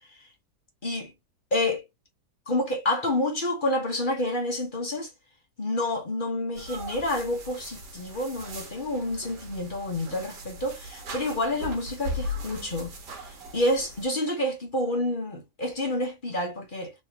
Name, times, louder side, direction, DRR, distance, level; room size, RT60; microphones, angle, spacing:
voice 1, 0.8-1.1 1.5-1.8 2.5-5.1 5.6-12.9 13.5-16.9, left 1 dB, 35° left, 1.2 m, -28 dB
sound 1, 6.6-14.1, left 1 dB, 80° right, 2.1 m, -39 dB
4.2 x 3.6 x 2.9 m
omnidirectional pair, 1.8 m